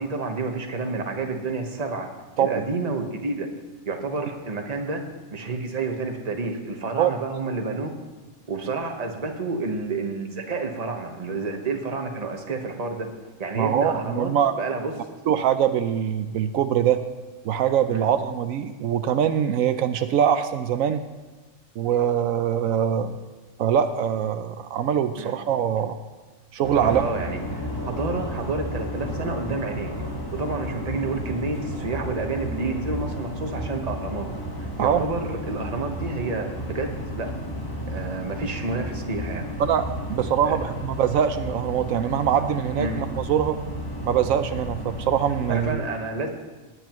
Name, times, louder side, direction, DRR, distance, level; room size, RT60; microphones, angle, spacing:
voice 1, 0.0-2.1 2.4-3.5 3.9-5.0 5.3-7.9 8.5-13.1 13.4-15.2 17.9-18.1 25.2-25.3 26.7-29.9 30.3-34.3 34.6-37.3 37.9-39.5 40.4-40.6 42.8-43.0 44.5-44.6 45.5-46.3, right 3 dB, 30° right, 3 dB, 1.1 m, -29 dB
voice 2, 13.6-14.5 15.3-17.0 17.4-21.0 21.8-23.2 23.6-26.0 26.5-27.0 34.8-35.1 39.6-43.6 44.0-45.8, right 9 dB, 80° right, 9 dB, 1.0 m, -23 dB
sound 1, 26.6-45.7, equal, 15° left, 1.4 m, -33 dB
17.5 x 9.8 x 3.0 m, 1.3 s
omnidirectional pair, 1.4 m